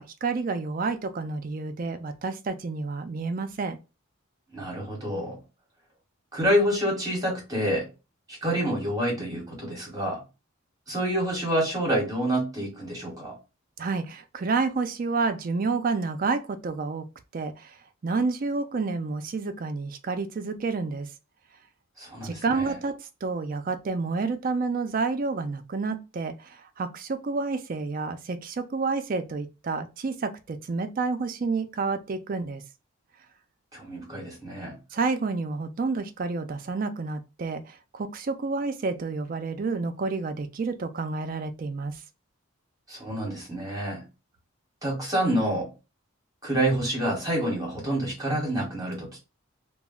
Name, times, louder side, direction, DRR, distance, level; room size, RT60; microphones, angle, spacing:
voice 1, 0.0-3.8 13.8-17.0 17.3-17.8 18.0-21.1 22.2-32.6 34.9-42.0, right 4 dB, 40° right, 0.3 m, -29 dB
voice 2, 4.5-5.4 6.3-7.9 8.3-10.2 10.9-13.3 22.0-22.7 33.7-34.7 42.9-44.0 44.8-45.7 46.4-49.2, right 1 dB, 15° right, 0.9 m, -27 dB
2.3 x 2.0 x 3.5 m
head